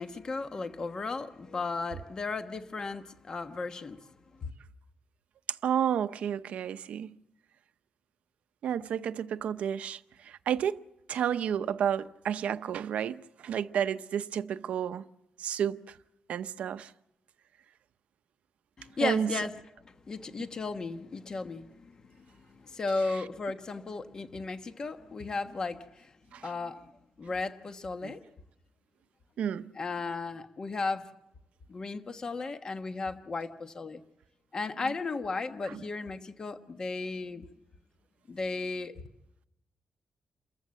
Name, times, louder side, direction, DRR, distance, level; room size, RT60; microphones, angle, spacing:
voice 1, 0.0-4.0 4.4-4.5 18.8-19.5 19.8-26.1 26.4-26.8 27.2-28.2 29.8-31.0 31.7-34.0 34.5-37.5 38.3-39.0, left 3 dB, 35° left, 1.2 m, -35 dB
voice 2, 5.6-7.2 8.6-15.0 15.4-16.0 16.3-16.9 19.0-19.3 26.3-26.5 28.0-28.1 29.4-29.7 34.8-34.9 35.6-35.8, right 9 dB, 90° right, 0.7 m, -31 dB
28.5 x 14.5 x 7.7 m
wide cardioid pair, 150°, 2 cm